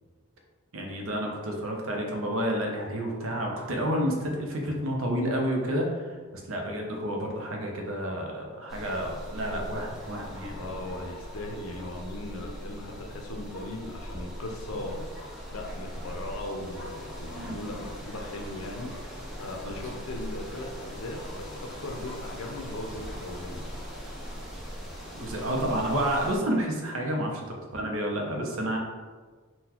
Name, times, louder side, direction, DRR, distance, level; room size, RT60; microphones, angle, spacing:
voice 1, 0.7-10.5 17.3-17.7 25.1-28.8, equal, 65° right, 0 dB, 0.6 m, -30 dB
sound 1, 8.7-26.4, equal, ahead, 0.4 m, -40 dB
voice 2, 10.4-15.0 15.5-23.7, left 1 dB, 65° left, 1 dB, 0.5 m, -38 dB
3.8 x 2.1 x 2.8 m, 1.4 s
head